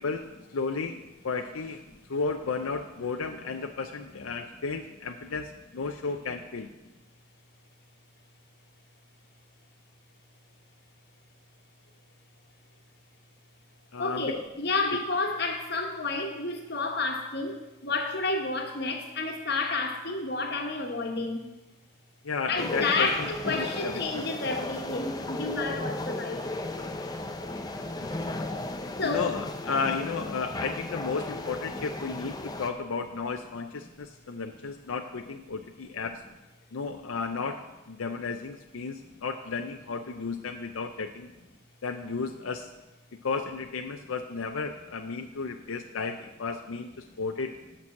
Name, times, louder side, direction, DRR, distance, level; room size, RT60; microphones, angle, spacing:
voice 1, 0.0-1.8 2.1-6.7 13.9-14.3 22.2-24.2 25.7-25.8 28.0-28.1 29.0-36.2 36.7-41.3 41.8-42.7 43.2-47.5, left 4 dB, 90° left, 6 dB, 0.6 m, -33 dB
voice 2, 14.0-21.5 22.5-26.5 29.0-29.3, left 3 dB, 55° left, 3 dB, 1.3 m, -30 dB
sound 1, 22.6-32.7, left 2 dB, 20° left, 0.6 m, -35 dB
8.7 x 6.1 x 7.1 m, 1.0 s
head